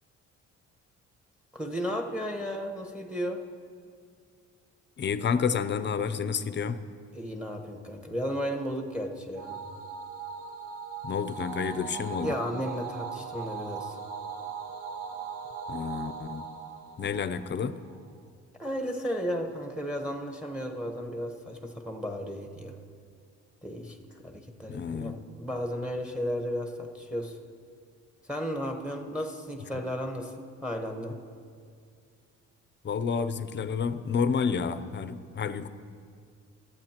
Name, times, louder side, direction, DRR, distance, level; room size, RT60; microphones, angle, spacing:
voice 1, 1.5-3.4 7.1-9.6 12.2-14.0 18.6-22.7 23.6-24.0 24.2-27.4 28.3-31.2, equal, 5° right, 4 dB, 1.1 m, -34 dB
voice 2, 5.0-6.8 11.0-12.3 15.7-16.4 17.0-17.8 24.7-25.2 32.8-35.7, left 6 dB, 35° left, 12 dB, 0.6 m, -30 dB
sound 1, 9.4-18.0, right 6 dB, 80° right, 1.0 m, -39 dB
23.5 x 8.5 x 3.0 m, 2.2 s
cardioid pair, 90°, 30 cm